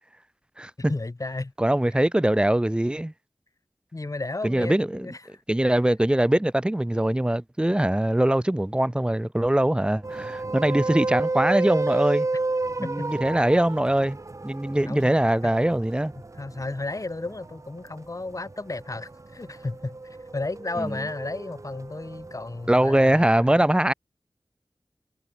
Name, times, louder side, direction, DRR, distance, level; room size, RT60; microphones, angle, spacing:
voice 1, 0.8-1.5 3.9-5.4 12.8-13.1 14.9-15.1 16.3-23.7, left 2 dB, 40° left, 3.8 m, -33 dB
voice 2, 1.6-3.1 4.4-5.1 5.5-12.3 12.8-14.2 14.4-16.1 20.8-21.0 22.7-23.9, right 1 dB, 10° right, 0.7 m, -22 dB
sound 1, 10.0-23.2, right 3 dB, 40° right, 1.0 m, -32 dB
wide cardioid pair, 75°, 8 cm